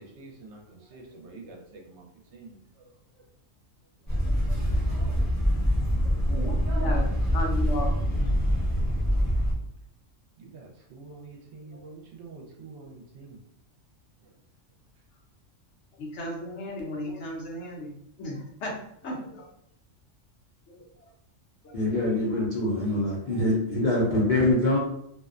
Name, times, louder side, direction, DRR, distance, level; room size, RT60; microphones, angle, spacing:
voice 1, 0.0-3.3 4.1-5.3 5.8-6.3 6.6-7.1 8.7-9.5 10.4-13.4 14.2-14.3 21.9-22.5 23.0-23.4 23.7-23.8 24.6-24.8, right 3 dB, 65° right, 0 dB, 0.9 m, -47 dB
sound 1, 4.1-9.5, equal, 15° left, 0.7 m, -25 dB
voice 2, 6.3-7.0 7.3-8.4 16.0-17.9 18.2-18.8 19.0-19.5 20.7-20.8 21.6-21.9, left 1 dB, 70° left, -1 dB, 0.9 m, -34 dB
voice 3, 21.7-24.8, left 1 dB, 50° left, -6 dB, 0.6 m, -24 dB
2.5 x 2.1 x 2.4 m, 0.72 s
omnidirectional pair, 1.3 m